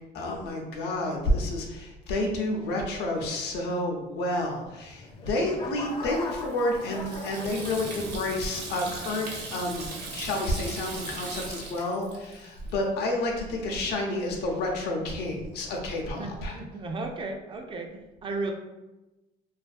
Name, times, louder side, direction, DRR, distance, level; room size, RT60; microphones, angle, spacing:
voice 1, 0.1-9.9 10.1-16.5, left 1 dB, 80° left, 1 dB, 0.6 m, -30 dB
sound 1, 4.7-8.3 8.9-9.2, left 2 dB, 30° left, 0.4 m, -40 dB
Water tap faucet / Sink (filling or washing), 6.0-12.8, right 3 dB, 75° right, 0.6 m, -39 dB
voice 2, 16.1-18.5, right 3 dB, 30° right, 3 dB, 0.4 m, -35 dB
2.4 x 2.3 x 2.4 m, 1.0 s
cardioid pair, 110°, 17 cm